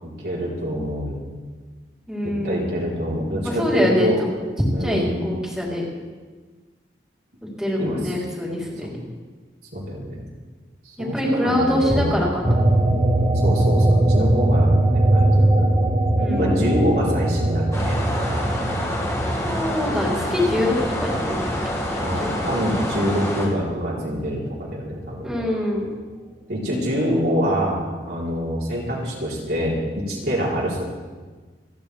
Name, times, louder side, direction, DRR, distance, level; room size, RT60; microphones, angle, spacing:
voice 1, 0.0-1.3 2.2-4.2 4.7-5.1 7.8-8.1 8.8-8.9 9.7-10.2 10.8-12.1 13.4-15.8 16.3-18.0 22.0-25.3 26.5-30.8, equal, 65° right, -5 dB, 3.9 m, -25 dB
voice 2, 2.1-2.7 3.4-4.3 4.8-5.9 7.6-8.9 11.0-12.5 16.2-16.6 19.4-20.8 21.0-21.4 21.9-22.3 25.2-26.0, left 1 dB, 5° right, -6 dB, 3.7 m, -24 dB
sound 1, 12.4-23.3 23.7-25.2, right 1 dB, 35° right, 1.2 m, -21 dB
sound 2, 17.7-23.5, equal, 15° left, 2.2 m, -27 dB
29.0 x 10.5 x 3.5 m, 1.4 s
head